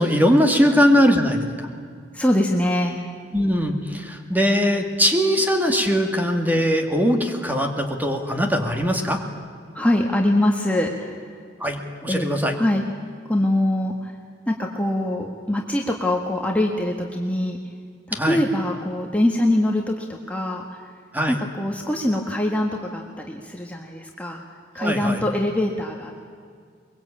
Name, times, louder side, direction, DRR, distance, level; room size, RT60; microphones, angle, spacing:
voice 1, 0.0-1.7 3.3-9.2 11.6-12.5 18.1-18.4 21.1-21.4 24.8-25.2, equal, 10° right, 3 dB, 2.2 m, -20 dB
voice 2, 2.1-3.1 9.7-11.3 12.0-12.2 12.5-12.8 13.2-14.1 14.5-17.6 18.1-21.0 21.3-24.4 24.7-26.2, left 1 dB, 10° left, 0 dB, 1.6 m, -23 dB
23.0 x 22.5 x 8.7 m, 2.1 s
head